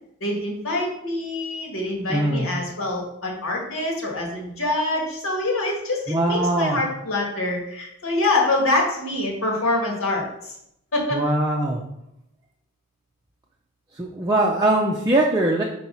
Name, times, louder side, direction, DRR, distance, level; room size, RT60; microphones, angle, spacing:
voice 1, 0.2-10.5 10.9-11.3, left 2 dB, 70° left, 0 dB, 1.7 m, -25 dB
voice 2, 2.1-2.5 6.1-6.8 11.1-11.8 14.0-15.6, right 1 dB, 15° right, -2 dB, 0.5 m, -21 dB
4.7 x 4.5 x 5.4 m, 0.80 s
head